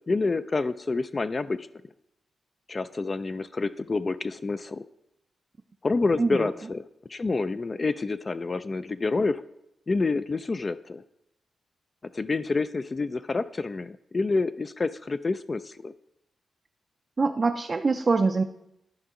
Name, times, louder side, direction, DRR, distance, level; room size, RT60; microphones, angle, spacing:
voice 1, 0.0-1.7 2.7-4.8 5.8-9.4 9.9-11.0 12.1-15.9, left 3 dB, 35° left, 12 dB, 0.3 m, -28 dB
voice 2, 17.2-18.4, right 4 dB, 35° right, 5 dB, 0.4 m, -24 dB
11.5 x 5.2 x 3.7 m, 0.82 s
cardioid pair, 95°, 0 cm